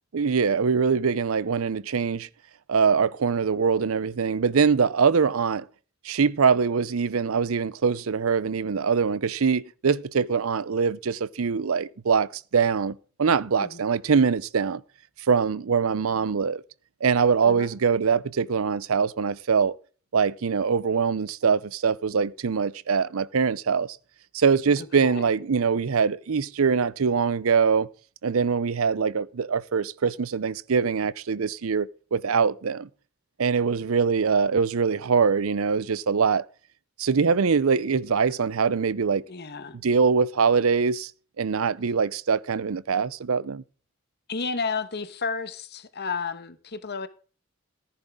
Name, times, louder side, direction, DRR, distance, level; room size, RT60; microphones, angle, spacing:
voice 1, 0.1-2.3 2.7-5.6 6.0-14.8 15.3-16.6 17.0-19.8 20.1-23.9 24.3-27.9 28.2-32.9 33.4-36.4 37.0-39.2 39.8-41.1 41.4-43.6, right 5 dB, 75° right, 0.6 m, -23 dB
voice 2, 25.0-25.3 39.3-39.8 44.3-47.1, left 4 dB, 50° left, 1.2 m, -32 dB
14.5 x 10.0 x 3.7 m
head